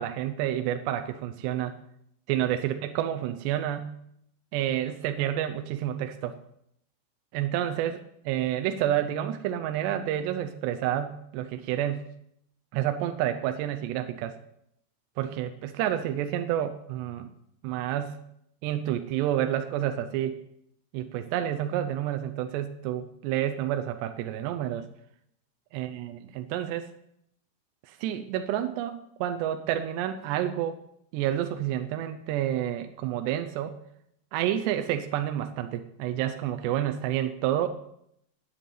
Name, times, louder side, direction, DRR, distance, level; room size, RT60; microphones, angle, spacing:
voice 1, 0.0-1.8 2.3-3.9 4.5-6.4 7.3-8.0 8.3-12.0 12.7-14.4 15.2-17.3 17.6-18.2 18.6-20.4 20.9-24.9 25.7-26.9 27.9-30.8 31.1-33.7 34.3-37.7, right 11 dB, 80° right, 8 dB, 2.6 m, -29 dB
9.9 x 8.4 x 9.1 m, 0.74 s
omnidirectional pair, 5.5 m